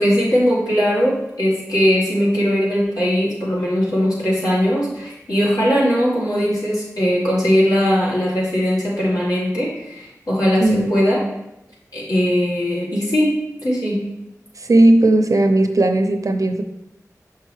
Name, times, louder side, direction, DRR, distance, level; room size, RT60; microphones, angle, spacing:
voice 1, 0.0-11.2 11.9-14.0, equal, 85° left, -7 dB, 2.4 m, -19 dB
voice 2, 10.6-10.9 14.6-16.6, right 1 dB, 60° right, 7 dB, 0.6 m, -16 dB
6.1 x 5.6 x 3.1 m, 0.89 s
wide cardioid pair, 60°, 6 cm